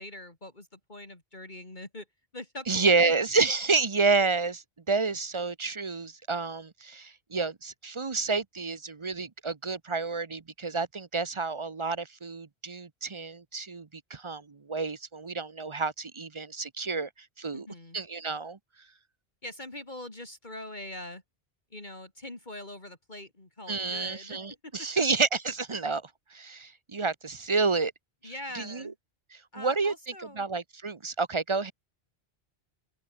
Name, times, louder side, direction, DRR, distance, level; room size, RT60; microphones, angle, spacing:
voice 1, 0.0-2.0 2.3-3.1 17.5-18.0 19.4-21.2 21.7-25.0 28.2-28.9 29.5-30.5, left 1 dB, 45° left, 3.4 m, -43 dB
voice 2, 2.7-17.1 17.4-17.7 17.9-18.6 23.7-27.9 28.2-28.9 29.3-29.9 30.3-31.7, right 4 dB, 30° right, 0.7 m, -29 dB
open air
omnidirectional pair, 1.1 m